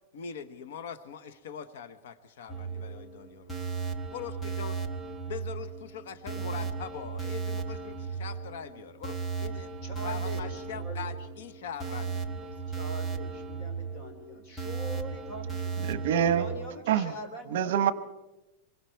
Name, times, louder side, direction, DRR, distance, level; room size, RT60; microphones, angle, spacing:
voice 1, 0.1-3.7 4.1-4.9 5.2-9.7 10.0-12.5, left 7 dB, 65° left, 11 dB, 1.1 m, -42 dB
sound 1, 2.5-16.6, right 5 dB, 5° left, 1.0 m, -36 dB
voice 2, 6.3-6.7 7.2-7.8 8.1-8.2 9.8-11.2 12.8-15.8 16.4-17.9, left 1 dB, 35° left, 5 dB, 3.1 m, -43 dB
voice 3, 15.8-16.5 16.9-17.1 17.5-17.9, right 9 dB, 60° right, 14 dB, 1.1 m, -25 dB
26.5 x 23.0 x 4.6 m, 1.0 s
supercardioid pair, 180°, 0 cm